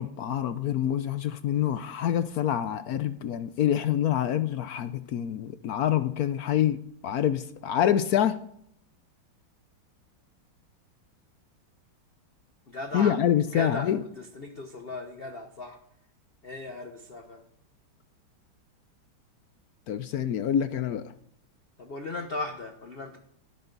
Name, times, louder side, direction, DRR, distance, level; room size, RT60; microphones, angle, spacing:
voice 1, 0.0-6.8 7.0-8.4 12.9-14.0 19.9-21.0, left 10 dB, 70° left, 12 dB, 0.9 m, -26 dB
voice 2, 12.7-13.1 13.5-13.9 14.4-15.8 16.4-17.4 21.8-23.2, left 2 dB, 35° left, 4 dB, 1.1 m, -36 dB
18.0 x 13.5 x 4.0 m, 0.70 s
omnidirectional pair, 2.2 m